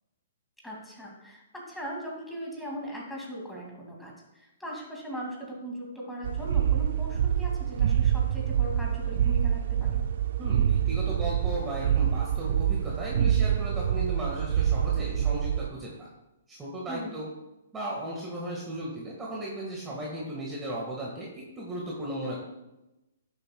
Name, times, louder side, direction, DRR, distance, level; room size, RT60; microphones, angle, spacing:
voice 1, 0.6-10.0 16.9-17.2, equal, 5° left, -3 dB, 2.2 m, -39 dB
sound 1, 6.2-15.7, right 9 dB, 60° right, 0.4 m, -26 dB
voice 2, 10.4-16.1 16.5-17.3 17.7-22.4, right 1 dB, 15° right, -4 dB, 1.6 m, -36 dB
10.5 x 7.0 x 2.3 m, 0.97 s
hypercardioid pair, 125°, 0 cm